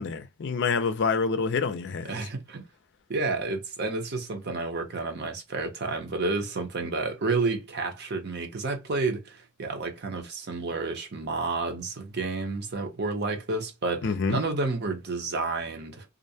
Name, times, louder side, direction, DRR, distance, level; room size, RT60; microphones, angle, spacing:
voice 1, 0.0-2.1 14.0-14.4, left 5 dB, 55° left, 0.4 m, -27 dB
voice 2, 2.1-2.7 3.1-16.0, right 3 dB, 50° right, 0.8 m, -30 dB
2.5 x 2.1 x 2.7 m
head